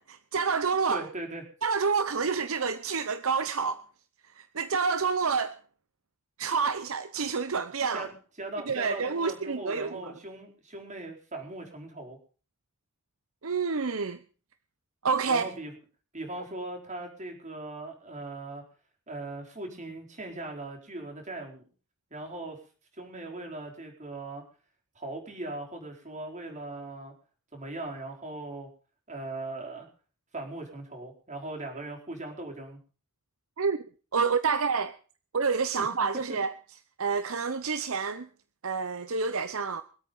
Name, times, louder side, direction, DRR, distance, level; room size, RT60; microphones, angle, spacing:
voice 1, 0.0-1.0 1.6-3.8 4.3-5.6 6.4-8.1 8.7-10.1 13.4-14.2 15.0-15.5 33.6-33.8 34.1-34.9 35.3-36.5 37.0-38.3 38.6-39.8, right 5 dB, 65° right, 0.8 m, -28 dB
voice 2, 0.9-1.4 7.9-12.2 15.3-15.7 16.1-18.6 19.1-21.6 22.1-22.6 23.0-24.4 24.9-27.1 27.5-28.7 29.1-29.9 30.3-32.8 36.3-36.4, right 2 dB, 35° right, 4.7 m, -39 dB
23.5 x 8.6 x 5.4 m
head